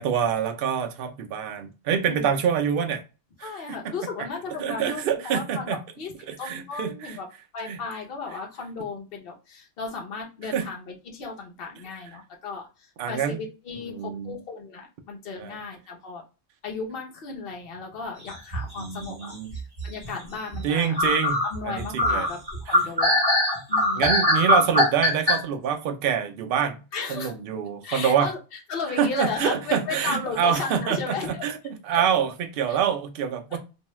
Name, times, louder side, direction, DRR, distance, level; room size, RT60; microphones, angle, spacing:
voice 1, 0.0-3.0 3.4-3.5 4.6-5.8 6.3-7.2 7.6-7.8 10.4-10.7 13.0-13.4 13.8-14.4 15.4-15.6 18.8-19.5 20.6-22.3 22.7-22.8 24.0-26.8 27.1-28.3 29.0-31.6 31.8-33.6, right 7 dB, 60° right, 0.7 m, -26 dB
voice 2, 2.0-2.4 3.4-7.3 7.5-16.2 16.6-21.0 21.4-23.2 23.7-24.2 26.9-27.3 27.8-28.4 28.7-31.4 31.9-32.0 32.7-32.8 33.5-33.6, left 4 dB, 60° left, 0.9 m, -35 dB
sound 1, 18.3-19.1 19.5-20.1 20.5-20.6 21.0-25.4, left 1 dB, 20° right, 1.2 m, -21 dB
2.6 x 2.2 x 3.0 m
omnidirectional pair, 1.1 m